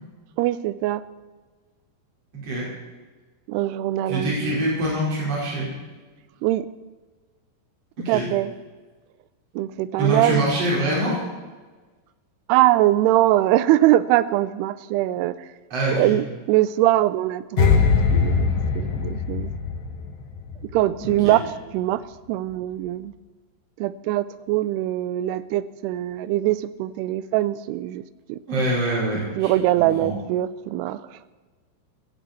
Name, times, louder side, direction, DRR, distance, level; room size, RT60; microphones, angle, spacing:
voice 1, 0.4-1.0 3.5-4.7 6.4-6.7 8.1-8.5 9.6-10.6 12.5-15.4 15.9-19.5 20.7-21.4 21.7-22.0 22.3-23.1 23.8-28.0 28.3-28.4 29.4-31.2, right 15 dB, 80° right, 16 dB, 2.6 m, -22 dB
voice 2, 2.3-2.7 4.1-5.7 8.0-8.3 10.0-11.2 15.7-16.1 21.0-21.3 28.5-29.5 29.8-30.1, right 1 dB, 35° right, -5 dB, 5.6 m, -24 dB
sound 1, 17.6-20.8 21.0-21.3, left 5 dB, 90° left, 3.3 m, -21 dB
15.5 x 15.5 x 4.4 m, 1.3 s
omnidirectional pair, 4.9 m